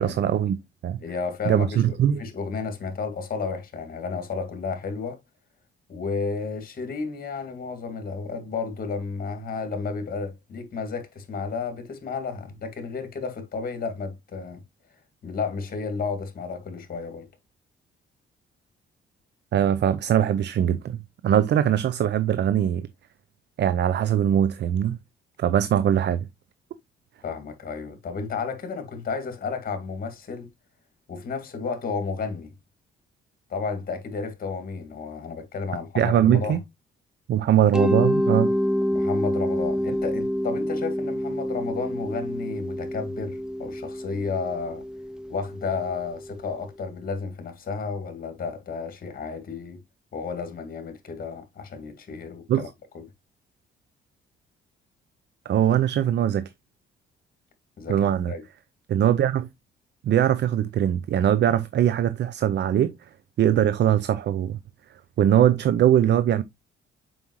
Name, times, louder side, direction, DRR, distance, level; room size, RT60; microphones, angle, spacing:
voice 1, 0.0-1.0 1.5-2.2 19.5-22.9 23.6-25.0 25.4-26.3 36.0-36.6 37.3-38.5 52.5-52.7 55.5-56.5 57.9-58.3 58.9-59.5 60.0-62.9 63.4-64.6 65.2-66.4, right 10 dB, 60° right, 0.6 m, -21 dB
voice 2, 1.0-5.2 5.9-14.6 15.2-17.3 27.2-30.5 31.1-32.5 33.5-36.6 37.6-37.7 38.9-44.8 45.3-49.8 50.1-52.7 52.9-53.0 57.8-58.4, left 5 dB, 45° left, 2.1 m, -32 dB
Mallet percussion, 37.7-46.5, equal, 5° right, 0.4 m, -27 dB
7.2 x 5.3 x 3.1 m
cardioid pair, 90°, 20 cm